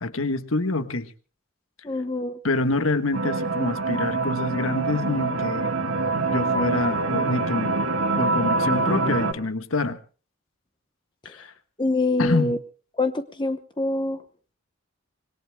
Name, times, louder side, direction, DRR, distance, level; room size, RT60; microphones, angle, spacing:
voice 1, 0.0-1.1 2.4-5.7 6.3-7.8 8.2-10.0 11.2-11.5 12.2-12.5, left 2 dB, 75° left, 10 dB, 1.4 m, -26 dB
voice 2, 1.8-2.4 11.2-11.3 11.8-12.6 13.0-14.2, left 2 dB, 20° left, 9 dB, 0.9 m, -25 dB
sound 1, 3.1-9.3, right 3 dB, 85° right, 2.3 m, -25 dB
26.0 x 21.5 x 2.2 m, 0.38 s
head